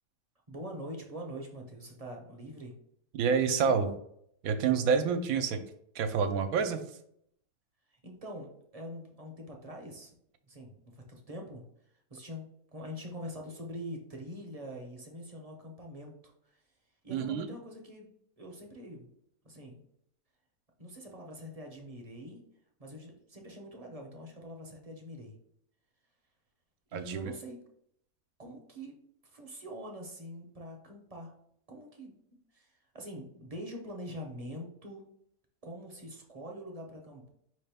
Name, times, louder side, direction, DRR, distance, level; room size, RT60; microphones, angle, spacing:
voice 1, 0.5-2.7 7.9-10.1 10.4-11.6 12.1-16.6 17.0-18.1 18.4-19.1 19.4-19.8 20.8-22.4 22.8-25.3 26.9-27.6 28.4-29.0 29.2-31.3 31.7-32.1 32.5-35.0 35.6-37.3, equal, 35° right, 1 dB, 0.7 m, -44 dB
voice 2, 3.2-3.9 4.4-5.6 5.9-6.8 17.1-17.5 26.9-27.3, right 6 dB, 80° right, 8 dB, 1.0 m, -28 dB
4.8 x 3.2 x 3.4 m, 0.71 s
omnidirectional pair, 1.5 m